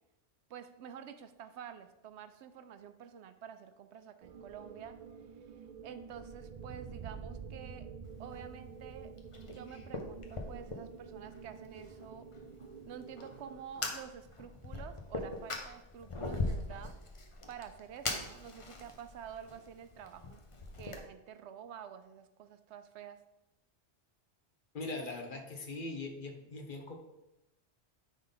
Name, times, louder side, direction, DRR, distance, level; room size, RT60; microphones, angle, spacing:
voice 1, 0.5-5.0 5.8-7.9 8.2-9.1 9.5-12.3 12.9-16.9 17.5-20.4 20.8-23.2, right 8 dB, 80° right, 10 dB, 0.9 m, -49 dB
sound 1, 4.2-13.6, right 6 dB, 60° right, 0.4 m, -49 dB
Fire, 8.0-21.0, left 2 dB, 30° left, 0.8 m, -42 dB
voice 2, 24.7-27.0, left 2 dB, 50° left, 4 dB, 1.0 m, -41 dB
9.3 x 3.7 x 3.9 m, 0.93 s
omnidirectional pair, 1.2 m